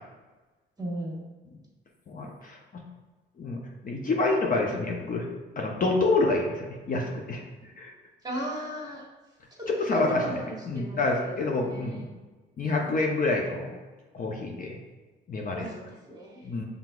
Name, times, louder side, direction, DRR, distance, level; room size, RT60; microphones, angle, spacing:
voice 1, 0.8-1.2 8.2-9.0 9.6-12.1 15.5-16.5, right 1 dB, 20° right, -2 dB, 1.4 m, -36 dB
voice 2, 2.1-2.8 3.4-5.2 5.6-7.4 7.8-7.9 9.7-10.2 10.7-12.1 12.6-13.7 14.1-14.8 15.3-15.7 16.4-16.6, left 2 dB, 45° left, 0 dB, 0.7 m, -27 dB
5.8 x 3.5 x 2.4 m, 1.3 s
cardioid pair, 90°, 20 cm